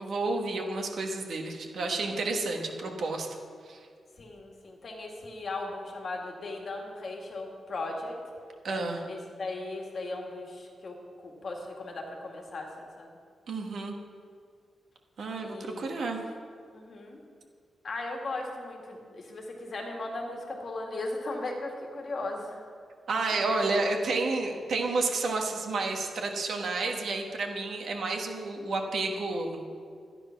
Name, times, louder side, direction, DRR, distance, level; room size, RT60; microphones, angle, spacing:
voice 1, 0.0-3.3 3.7-3.8 8.6-9.0 13.5-13.9 15.2-16.2 23.1-29.6, right 3 dB, 60° right, 2 dB, 1.5 m, -30 dB
voice 2, 4.2-8.2 8.6-11.0 11.2-13.1 15.4-16.0 16.7-17.2 17.8-22.7 23.4-23.5, left 2 dB, 45° left, 0 dB, 2.0 m, -37 dB
12.5 x 9.9 x 5.8 m, 2.1 s
wide cardioid pair, 155°, 0 cm